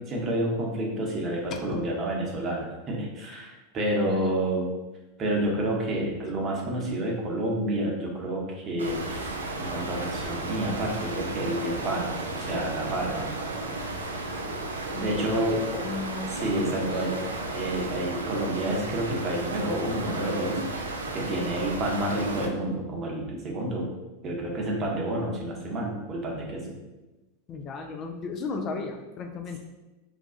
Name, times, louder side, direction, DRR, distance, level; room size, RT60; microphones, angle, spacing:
voice 1, 0.0-4.6 5.2-9.3 9.6-13.3 15.0-15.6 16.3-17.2 17.5-23.9 24.2-26.8, right 1 dB, 35° right, -1 dB, 0.8 m, -29 dB
voice 2, 4.1-4.4 14.9-17.4 27.5-29.6, left 4 dB, 40° left, 4 dB, 0.3 m, -35 dB
sound 1, 8.8-22.5, right 2 dB, 90° right, 0.3 m, -34 dB
2.5 x 2.3 x 3.7 m, 1.1 s
hypercardioid pair, 95°, 0 cm